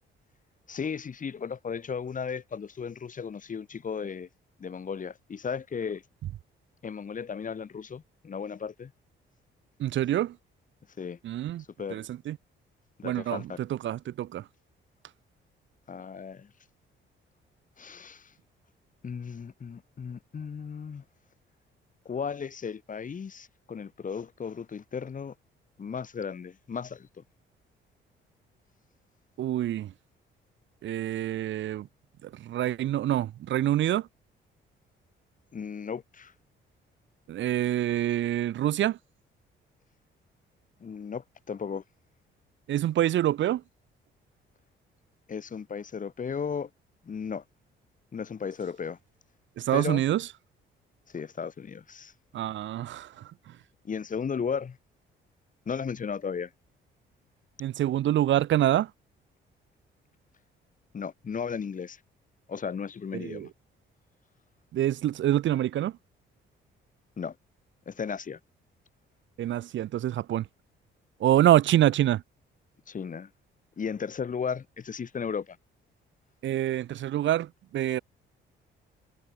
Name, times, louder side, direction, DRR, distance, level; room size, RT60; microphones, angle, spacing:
voice 1, 0.7-4.3 4.6-6.0 6.8-8.9 11.0-11.2 11.8-12.0 13.0-13.6 15.9-16.5 17.8-18.3 19.0-21.0 22.0-25.3 25.8-27.2 35.5-36.3 40.8-41.8 45.3-46.7 47.0-47.4 48.1-49.0 49.7-50.0 51.1-52.1 53.8-54.8 55.7-56.5 60.9-62.0 62.5-63.5 67.2-67.3 67.9-68.4 72.9-73.3 73.8-75.6, left 6 dB, 40° left, 2.6 m, -35 dB
voice 2, 9.8-10.3 11.2-11.6 11.9-12.4 13.0-14.4 29.4-29.9 30.8-31.9 32.2-34.1 37.3-39.0 42.7-43.6 49.6-50.3 52.3-53.2 57.6-58.9 63.1-63.5 64.7-65.9 69.4-70.4 71.2-72.2 76.4-78.0, right 12 dB, 70° right, 1.0 m, -26 dB
cardioid pair, 90°, 20 cm